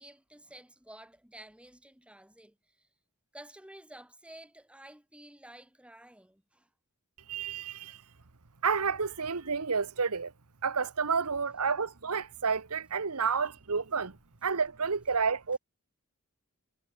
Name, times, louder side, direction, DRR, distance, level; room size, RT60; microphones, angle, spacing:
voice 1, 0.0-2.9 3.3-6.7, right 1 dB, 5° right, 6.6 m, -52 dB
voice 2, 7.3-8.0 8.6-10.3 10.6-14.2 14.4-15.6, right 5 dB, 85° right, 1.2 m, -30 dB
head